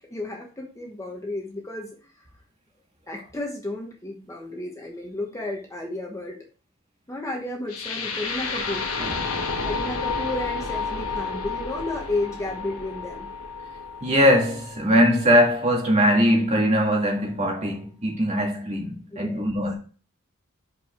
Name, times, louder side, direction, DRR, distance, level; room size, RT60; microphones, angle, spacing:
voice 1, 0.1-2.0 3.1-6.4 7.1-8.9 9.6-13.3 19.1-19.4, left 2 dB, 15° left, 1.1 m, -32 dB
sound 1, 7.7-15.7, left 4 dB, 85° left, 1.3 m, -31 dB
voice 2, 9.0-9.4 14.0-19.7, equal, 30° right, 2.0 m, -21 dB
5.6 x 5.3 x 4.3 m
head